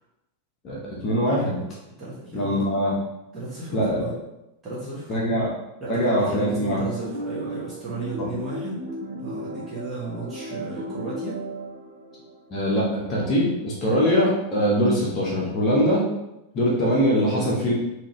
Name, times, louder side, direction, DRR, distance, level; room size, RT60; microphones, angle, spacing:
voice 1, 0.6-1.6 2.3-2.9 3.7-4.1 5.1-5.5 5.9-6.8 8.2-8.3 12.5-16.0 16.5-17.7, equal, 35° left, -5 dB, 0.8 m, -22 dB
voice 2, 2.0-2.6 3.3-4.1 4.6-5.1 5.8-8.8 9.1-11.4, right 2 dB, 20° right, -8 dB, 1.0 m, -34 dB
sound 1, 6.8-13.2, right 1 dB, 55° right, 0.6 m, -35 dB
2.8 x 2.5 x 3.1 m, 0.90 s
figure-of-eight pair, 90°, 0 cm